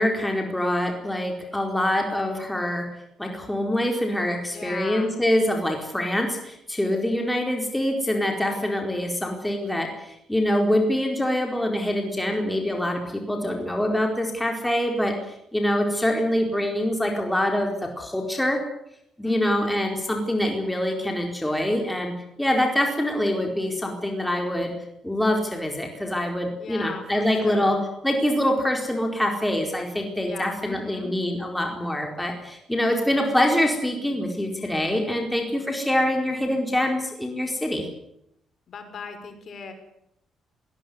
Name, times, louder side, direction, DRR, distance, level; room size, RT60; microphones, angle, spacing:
voice 1, 0.0-2.9 3.2-18.6 19.2-24.7 25.0-27.8 28.0-37.9, left 1 dB, 5° left, 2 dB, 4.4 m, -25 dB
voice 2, 4.5-5.2 19.2-19.7 26.6-27.8 30.3-31.2 38.7-39.7, left 5 dB, 55° left, 9 dB, 5.5 m, -38 dB
21.5 x 18.0 x 9.6 m, 0.77 s
cardioid pair, 90°, 0 cm